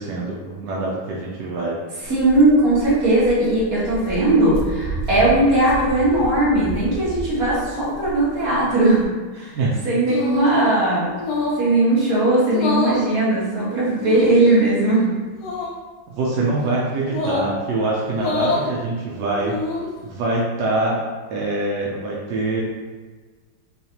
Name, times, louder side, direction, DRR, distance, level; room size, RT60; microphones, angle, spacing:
voice 1, 0.0-1.8 9.5-9.7 16.1-19.6 20.0-21.0 21.3-22.6, right 2 dB, 75° right, -4 dB, 1.0 m, -24 dB
Walk footsteps, 2.0-9.0, right 2 dB, 85° left, 0.7 m, -33 dB
voice 2, 2.0-9.5 9.8-11.1 11.6-15.2, right 2 dB, 45° right, -8 dB, 1.7 m, -18 dB
sound 1, 10.1-10.6 11.2-11.7 12.5-13.1 14.0-14.5 15.4-15.7 17.1-17.5 18.1-18.7 19.4-19.9, left 3 dB, 70° left, 1.1 m, -25 dB
4.0 x 3.1 x 2.8 m, 1.4 s
omnidirectional pair, 2.3 m